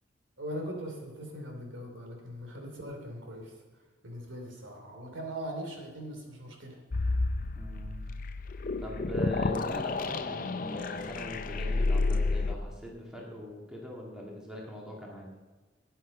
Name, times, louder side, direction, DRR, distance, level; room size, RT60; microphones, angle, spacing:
voice 1, 0.4-3.5 4.0-6.8, equal, 75° right, 1 dB, 2.9 m, -40 dB
sound 1, 6.9-12.5, left 3 dB, 45° left, 0.5 m, -30 dB
voice 2, 7.6-8.0 8.8-15.3, left 1 dB, 5° right, -2 dB, 1.9 m, -41 dB
12.5 x 9.1 x 5.4 m, 1.3 s
head